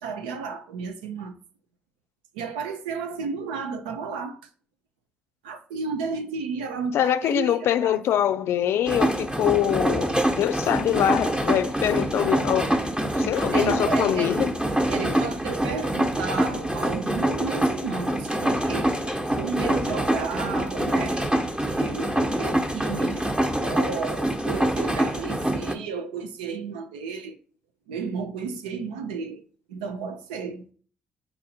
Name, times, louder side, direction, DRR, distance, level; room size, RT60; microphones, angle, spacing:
voice 1, 0.0-1.4 2.3-4.4 5.4-8.0 13.5-14.3 14.9-19.0 19.4-21.2 21.7-27.4 27.9-29.4 29.7-30.7, right 5 dB, 85° right, 0.5 m, -33 dB
voice 2, 6.9-12.8 13.2-14.5, left 10 dB, 65° left, 0.4 m, -24 dB
sound 1, 8.9-25.7, right 1 dB, 20° right, 0.9 m, -25 dB
4.2 x 2.6 x 4.2 m
hypercardioid pair, 45°, 5 cm